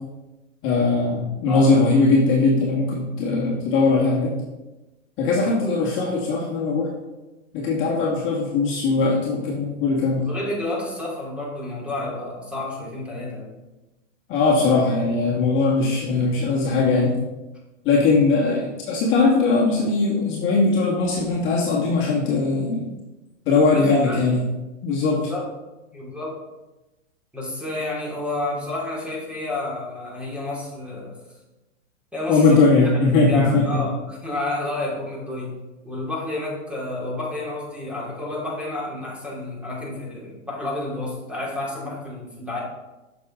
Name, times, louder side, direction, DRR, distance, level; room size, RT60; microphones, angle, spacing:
voice 1, 0.6-4.3 5.2-6.9 7.5-10.3 14.3-17.2 17.8-22.9 23.5-24.4 24.8-25.2 32.3-33.8, left 3 dB, 35° left, -3 dB, 1.9 m, -20 dB
voice 2, 10.3-13.5 23.5-24.2 25.1-25.5 25.9-26.4 27.3-31.2 32.1-32.6 33.2-35.6 35.8-42.6, left 2 dB, 5° right, -5 dB, 2.7 m, -30 dB
8.0 x 6.6 x 3.8 m, 1.0 s
hypercardioid pair, 125°, 37 cm